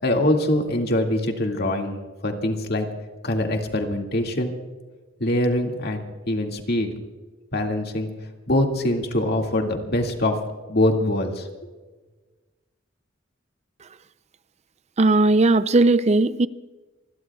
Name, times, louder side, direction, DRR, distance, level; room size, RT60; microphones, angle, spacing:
voice 1, 0.0-2.0 2.2-2.9 3.2-4.5 5.2-6.9 7.5-8.1 8.5-10.4 10.7-11.5, left 1 dB, 55° left, 2.2 m, -23 dB
voice 2, 15.0-16.5, right 2 dB, 35° right, 0.5 m, -17 dB
27.5 x 21.0 x 2.4 m
head